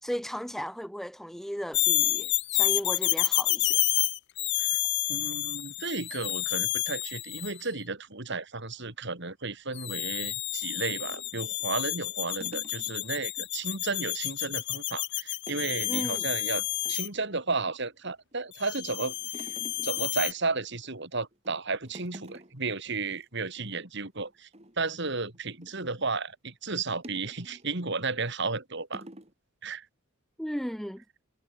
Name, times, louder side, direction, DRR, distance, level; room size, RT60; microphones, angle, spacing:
voice 1, 0.0-3.8 15.9-16.2 30.4-31.0, equal, ahead, 1.1 m, -35 dB
sound 1, 1.7-7.6 9.8-17.1 18.6-20.3, left 18 dB, 55° left, 0.6 m, -29 dB
voice 2, 5.1-16.6 16.9-19.6 19.8-24.5 24.8-29.0 29.6-29.8, right 3 dB, 55° right, 3.2 m, -33 dB
sound 2, 10.9-13.5 13.8-13.9 14.2-14.9 15.5-15.8 16.1-16.2 16.6-17.4 17.9-18.5 18.8-20.9 21.3-21.6 21.9-22.7 23.1-23.2 23.5-23.8 24.2-26.0 27.0-27.7 28.3-28.5 28.9-29.3, right 1 dB, 30° right, 5.0 m, -49 dB
head